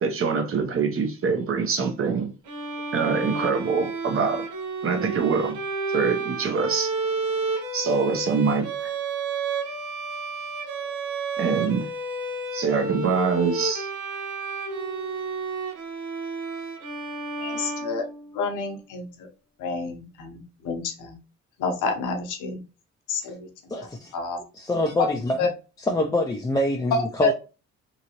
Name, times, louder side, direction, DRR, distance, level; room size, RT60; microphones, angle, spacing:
voice 1, 0.0-2.3 2.9-4.4 4.8-5.6 5.9-6.9 7.7-8.7 11.4-11.9 12.5-13.9, right 5 dB, 45° right, 0.8 m, -24 dB
Bowed string instrument, 2.4-18.5, right 3 dB, 85° right, 0.8 m, -31 dB
voice 2, 17.4-18.0 18.3-19.3 19.6-21.2 21.6-22.6 23.1-24.4 25.0-25.1 25.4-25.5 26.9-27.3, left 4 dB, 85° left, 0.9 m, -29 dB
voice 3, 23.7-24.1 24.5-25.4 25.8-27.3, left 1 dB, 15° left, 0.4 m, -25 dB
2.8 x 2.6 x 2.9 m
cardioid pair, 90°, 30 cm